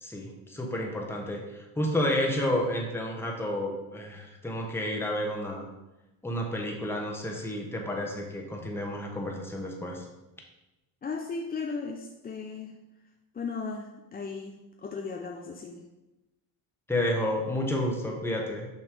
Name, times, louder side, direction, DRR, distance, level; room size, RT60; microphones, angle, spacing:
voice 1, 0.0-5.6 6.2-10.1 16.9-18.7, left 1 dB, 5° left, -1 dB, 1.1 m, -30 dB
voice 2, 11.0-12.8 13.3-15.9, left 4 dB, 20° left, 2 dB, 0.5 m, -36 dB
6.0 x 3.1 x 5.2 m, 1.0 s
supercardioid pair, 90°, 45 cm